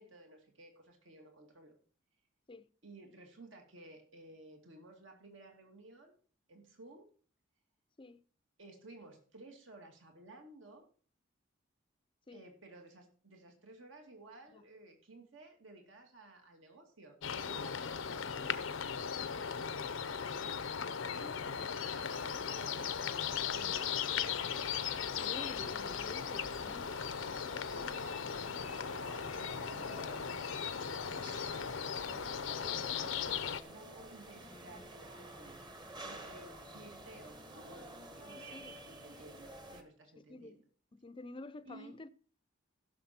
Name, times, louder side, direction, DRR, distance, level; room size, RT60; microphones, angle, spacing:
voice 1, 0.0-1.7 2.8-6.1 6.5-7.1 8.6-10.9 12.3-17.2 17.4-19.8 20.2-20.5 20.8-23.0 23.4-24.2 27.6-35.6 36.0-40.6 41.7-42.0, right 2 dB, 70° right, 2.2 m, -55 dB
sound 1, 17.2-33.6, left 7 dB, 80° left, 0.7 m, -38 dB
sound 2, 22.0-39.8, right 1 dB, 20° right, 1.1 m, -52 dB
voice 2, 25.1-26.9 38.4-38.7 40.3-40.6 40.9-42.1, left 2 dB, 25° left, 0.5 m, -49 dB
15.5 x 6.5 x 4.3 m
head